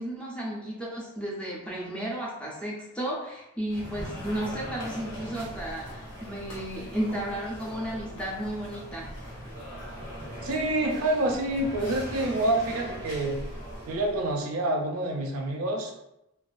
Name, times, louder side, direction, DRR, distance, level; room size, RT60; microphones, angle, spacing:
voice 1, 0.0-9.3, right 1 dB, 5° left, -5 dB, 0.4 m, -33 dB
sound 1, 3.7-14.3, equal, 75° left, 0.9 m, -40 dB
voice 2, 10.4-13.4 13.9-15.9, right 1 dB, 80° right, 1 dB, 0.4 m, -27 dB
2.4 x 2.2 x 2.4 m, 0.88 s
head